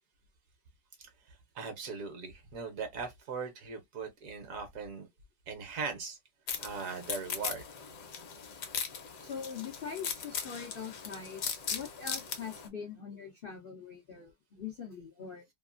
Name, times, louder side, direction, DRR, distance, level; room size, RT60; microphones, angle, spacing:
voice 1, 1.0-5.1 5.5-6.2 6.6-7.6, right 5 dB, 60° right, 1.0 m, -40 dB
sound 1, 6.5-12.7, left 7 dB, 65° left, 1.0 m, -39 dB
voice 2, 9.2-15.4, left 6 dB, 85° left, 0.4 m, -43 dB
2.9 x 2.4 x 2.4 m
omnidirectional pair, 1.8 m